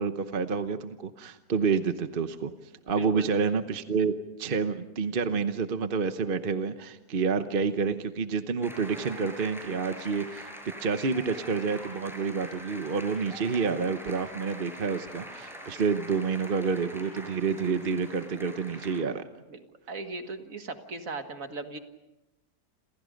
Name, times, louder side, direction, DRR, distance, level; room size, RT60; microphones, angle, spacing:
voice 1, 0.0-2.5 2.9-4.1 4.4-10.5 10.8-19.2, right 5 dB, 40° right, 9 dB, 1.0 m, -28 dB
voice 2, 2.9-3.3 19.5-19.6 19.9-21.8, right 3 dB, 55° right, 7 dB, 2.1 m, -38 dB
sound 1, 8.6-19.0, equal, ahead, 5.5 m, -44 dB
29.0 x 27.5 x 5.2 m, 0.97 s
omnidirectional pair, 1.7 m